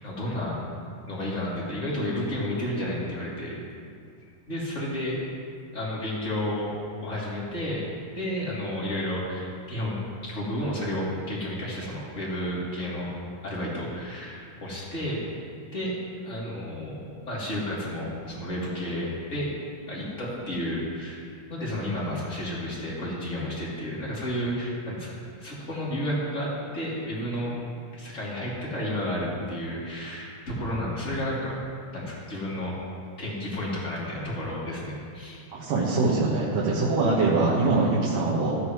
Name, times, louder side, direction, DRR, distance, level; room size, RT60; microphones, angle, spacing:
voice 1, 0.0-0.6 1.1-3.5 4.5-5.2 5.7-6.7 7.0-13.1 13.4-15.2 15.7-15.9 16.2-19.5 19.9-21.2 21.5-27.5 27.9-31.6 31.9-32.8 33.2-35.4, left 1 dB, 25° left, -7 dB, 3.2 m, -31 dB
voice 2, 35.5-38.6, right 3 dB, 80° right, -6 dB, 3.0 m, -23 dB
17.0 x 14.0 x 3.2 m, 2.4 s
omnidirectional pair, 3.7 m